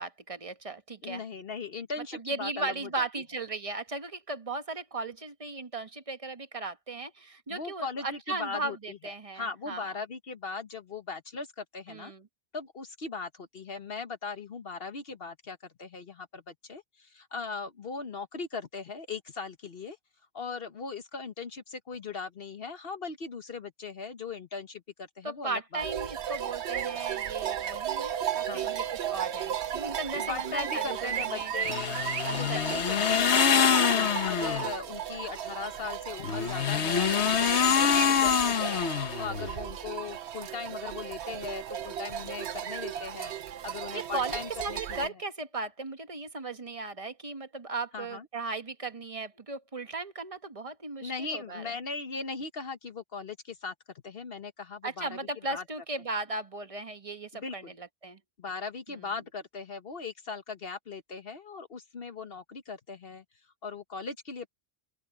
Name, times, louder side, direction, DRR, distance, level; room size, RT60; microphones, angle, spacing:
voice 1, 0.0-1.2 2.1-9.9 11.9-12.3 25.2-31.5 32.2-32.6 33.0-33.1 33.9-34.3 43.9-51.7 54.8-58.2 58.9-59.1, right 3 dB, 30° right, 1.3 m, -37 dB
voice 2, 1.0-3.0 7.5-9.0 9.3-12.1 12.5-20.0 20.3-25.8 28.5-28.7 30.2-32.0 32.4-33.9 34.2-43.3 43.6-45.1 47.9-48.3 51.0-53.7 54.0-55.2 55.5-55.6 57.3-57.7 58.4-63.2 63.6-64.5, left 4 dB, 60° left, 1.4 m, -39 dB
sound 1, 25.8-45.1, right 10 dB, 80° right, 1.1 m, -35 dB
sound 2, 31.6-34.7 36.2-39.5, left 7 dB, 80° left, 1.3 m, -25 dB
open air
omnidirectional pair, 1.1 m